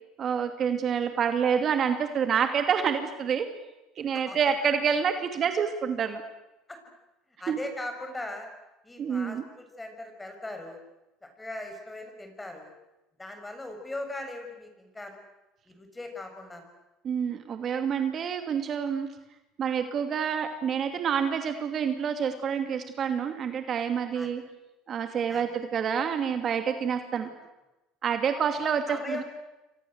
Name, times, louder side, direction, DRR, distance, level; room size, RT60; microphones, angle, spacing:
voice 1, 0.2-3.5 4.0-6.2 7.5-7.6 9.0-9.4 17.0-19.1 19.6-24.4 24.9-27.3 28.0-29.2, right 7 dB, 40° right, 7 dB, 2.6 m, -27 dB
voice 2, 7.4-8.5 8.8-10.8 11.2-12.7 13.2-15.2 15.7-16.7 24.1-24.3 25.3-25.5 28.9-29.2, left 2 dB, 10° left, 5 dB, 7.4 m, -39 dB
29.5 x 25.0 x 8.1 m, 0.99 s
supercardioid pair, 110°, 0 cm